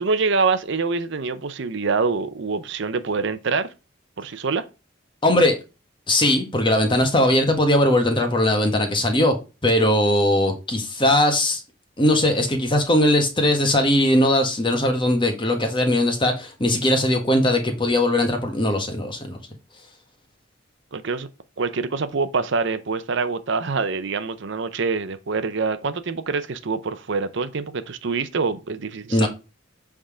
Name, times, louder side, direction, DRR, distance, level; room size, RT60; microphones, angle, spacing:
voice 1, 0.0-3.7 4.2-4.6 20.9-21.3 21.6-29.3, right 4 dB, 60° right, 0.6 m, -25 dB
voice 2, 5.2-5.6 6.1-9.4 9.6-11.6 12.0-19.4 29.1-29.3, left 1 dB, 25° left, 1.4 m, -20 dB
7.9 x 3.6 x 4.9 m
head